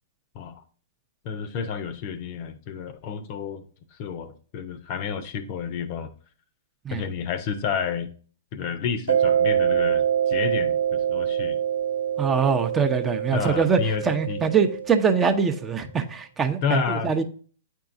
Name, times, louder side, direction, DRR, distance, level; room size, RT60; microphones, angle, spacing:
voice 1, 1.2-3.6 3.9-6.1 6.9-8.1 8.5-11.6 13.3-14.4 16.6-17.1, left 6 dB, 45° left, 0.7 m, -30 dB
Mallet percussion, 9.1-15.5, right 9 dB, 75° right, 0.5 m, -25 dB
voice 2, 12.2-17.2, right 6 dB, 20° right, 0.7 m, -23 dB
8.6 x 4.6 x 2.6 m
figure-of-eight pair, 115°, 0 cm